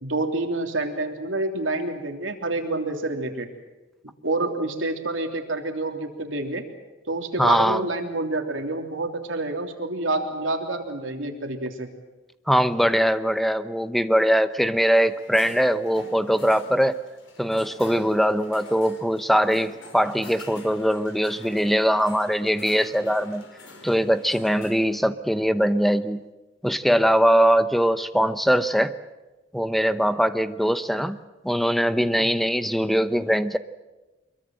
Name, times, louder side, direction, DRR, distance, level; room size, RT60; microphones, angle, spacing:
voice 1, 0.0-3.5 4.0-6.6 7.1-11.9 32.2-32.3, right 2 dB, 90° right, 4 dB, 3.2 m, -28 dB
voice 2, 7.4-7.8 12.5-17.0 17.4-23.4 23.8-26.2 26.6-29.0 29.5-31.2 31.4-33.6, equal, ahead, 12 dB, 0.8 m, -21 dB
sound 1, 14.9-24.8, left 2 dB, 80° left, 4.7 m, -46 dB
24.5 x 22.5 x 7.8 m, 1.1 s
head